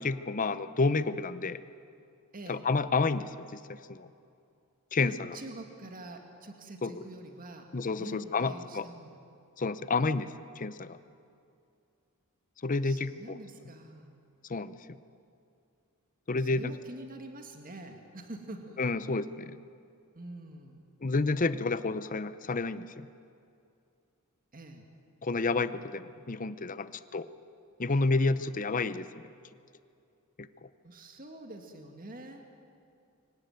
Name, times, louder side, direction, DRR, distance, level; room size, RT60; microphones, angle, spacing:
voice 1, 0.0-1.6 2.5-4.1 4.9-5.4 6.8-7.0 7.7-8.9 9.6-10.3 10.6-11.0 12.6-13.4 14.5-14.7 16.3-16.7 18.8-19.6 21.0-23.1 25.2-27.3 27.8-29.2 30.4-30.5, left 3 dB, 40° left, 14 dB, 0.7 m, -30 dB
voice 2, 5.1-7.7 8.0-9.2 12.8-14.2 16.4-18.8 19.1-19.2 20.1-20.8 24.5-24.9 30.8-32.4, right 1 dB, 40° right, 4 dB, 2.0 m, -46 dB
24.5 x 17.5 x 9.2 m, 2.5 s
head